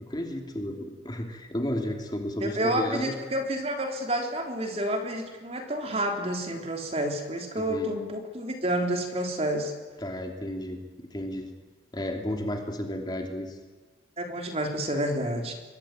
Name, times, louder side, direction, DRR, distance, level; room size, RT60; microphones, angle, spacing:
voice 1, 0.1-3.1 7.5-7.9 10.0-11.5 11.9-13.6, left 1 dB, 25° left, 3 dB, 2.9 m, -33 dB
voice 2, 2.4-9.7 14.2-15.5, right 1 dB, 35° right, 4 dB, 3.5 m, -29 dB
24.0 x 21.5 x 9.0 m, 1.4 s
head